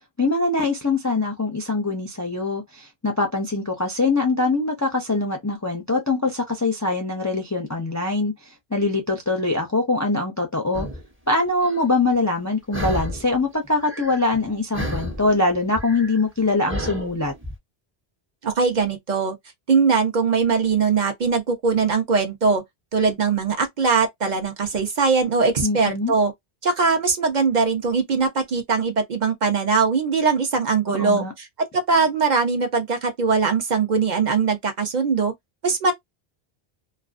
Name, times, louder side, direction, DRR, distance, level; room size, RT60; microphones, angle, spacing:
voice 1, 0.2-8.3 8.7-10.9 11.3-17.3 25.6-26.1 30.9-31.3, left 3 dB, 30° left, 0.3 m, -23 dB
sound 1, 10.7-11.0 11.6-11.8 12.7-13.4 13.6-14.5 14.7-17.5, equal, 15° right, 0.6 m, -31 dB
voice 2, 18.4-19.3 19.7-22.6 22.9-26.3 26.6-31.5 31.7-35.3 35.6-35.9, right 5 dB, 55° right, 0.7 m, -21 dB
2.4 x 2.2 x 2.4 m
omnidirectional pair, 1.0 m